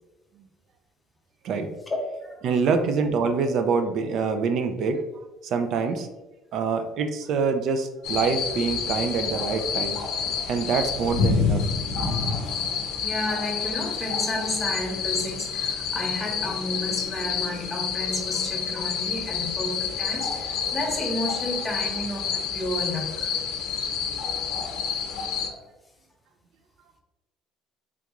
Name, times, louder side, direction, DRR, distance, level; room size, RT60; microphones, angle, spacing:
voice 1, 1.9-2.4 12.5-12.6 13.0-23.3 25.4-25.7, left 1 dB, 15° left, 1 dB, 0.5 m, -32 dB
voice 2, 2.4-5.0 5.4-6.1 6.5-10.0 10.5-11.7, right 5 dB, 50° right, 7 dB, 0.3 m, -25 dB
sound 1, 8.0-25.5, left 6 dB, 75° left, 0.5 m, -28 dB
3.4 x 2.9 x 2.4 m, 1.1 s
cardioid pair, 155°, 0 cm